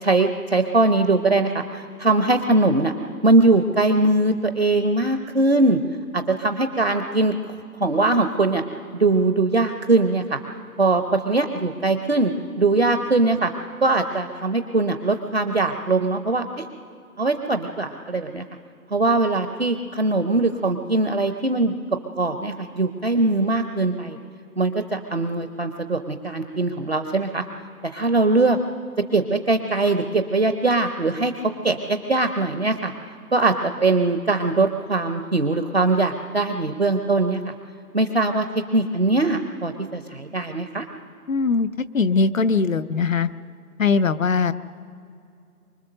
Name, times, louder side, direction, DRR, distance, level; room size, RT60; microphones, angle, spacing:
voice 1, 0.0-2.9 3.2-5.8 6.1-7.3 7.8-8.6 8.9-10.4 10.8-13.5 13.8-16.6 17.2-18.4 18.9-21.7 22.2-24.2 24.6-27.4 27.8-28.6 29.1-31.3 31.6-32.9 33.3-37.5 37.9-40.9, right 2 dB, 45° right, 7 dB, 0.7 m, -21 dB
voice 2, 41.3-41.7 41.9-43.3 43.8-44.5, left 4 dB, 60° left, 15 dB, 0.7 m, -20 dB
24.5 x 22.0 x 6.6 m, 2.5 s
figure-of-eight pair, 175°, 46 cm